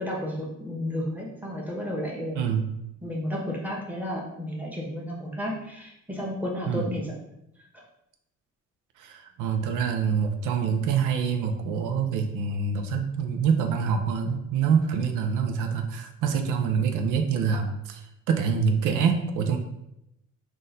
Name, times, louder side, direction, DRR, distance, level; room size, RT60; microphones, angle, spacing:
voice 1, 0.0-2.4 3.0-7.1 7.7-7.8, left 1 dB, 5° right, -3 dB, 1.2 m, -32 dB
voice 2, 2.3-2.7 6.7-6.9 9.0-18.0 18.3-19.6, right 6 dB, 85° right, 5 dB, 0.5 m, -25 dB
3.9 x 2.5 x 3.9 m, 0.84 s
cardioid pair, 90°, 30 cm